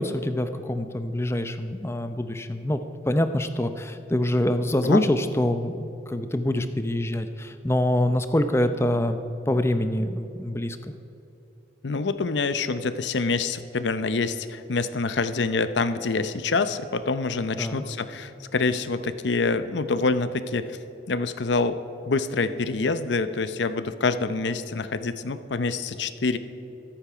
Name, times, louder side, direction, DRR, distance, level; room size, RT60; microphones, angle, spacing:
voice 1, 0.0-9.2 9.5-10.8 17.6-17.8, left 1 dB, 15° left, 9 dB, 0.6 m, -25 dB
voice 2, 11.8-20.8 21.1-26.4, left 3 dB, 80° left, 12 dB, 0.7 m, -26 dB
23.5 x 8.9 x 5.0 m, 2.9 s
head